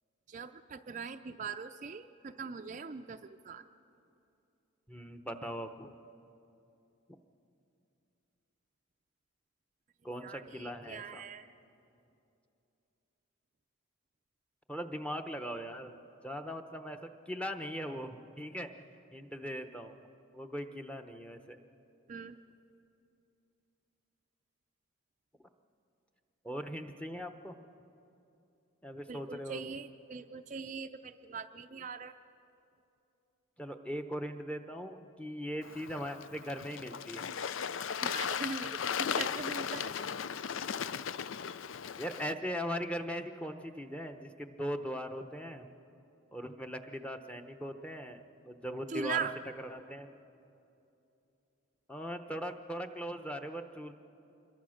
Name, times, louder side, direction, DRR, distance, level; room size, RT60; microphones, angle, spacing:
voice 1, 0.3-3.6 10.2-11.4 22.1-22.4 29.1-32.1 38.0-39.9 48.9-49.3, right 5 dB, 35° right, 7 dB, 0.4 m, -41 dB
voice 2, 4.9-5.9 10.0-11.2 14.7-16.0 16.2-18.7 19.1-19.9 20.3-21.6 26.4-27.5 28.8-29.8 33.6-37.3 42.0-45.7 46.3-49.3 49.6-50.1 51.9-53.9, equal, 5° left, 6 dB, 0.8 m, -40 dB
Bird / Water, 35.6-42.3, left 7 dB, 75° left, 0.5 m, -37 dB
26.0 x 22.5 x 6.4 m, 2.7 s
head